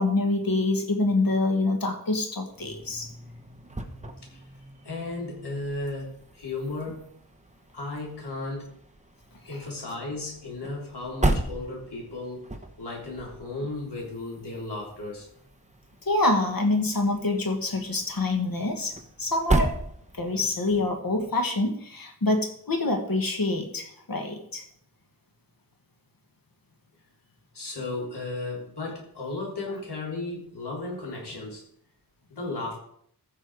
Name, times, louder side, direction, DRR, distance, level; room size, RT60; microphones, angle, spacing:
voice 1, 0.0-3.1 9.5-9.6 16.1-19.7 20.1-24.6 29.7-29.8, left 2 dB, 60° left, 4 dB, 2.0 m, -26 dB
sound 1, 2.5-20.5, right 2 dB, 15° right, 1.1 m, -35 dB
voice 2, 4.8-7.2 7.7-8.7 9.5-12.5 12.8-15.3 20.2-20.4 27.5-31.6 32.4-32.8, left 2 dB, 80° left, -2 dB, 3.8 m, -35 dB
15.0 x 6.3 x 4.9 m, 0.66 s
wide cardioid pair, 90°, 40 cm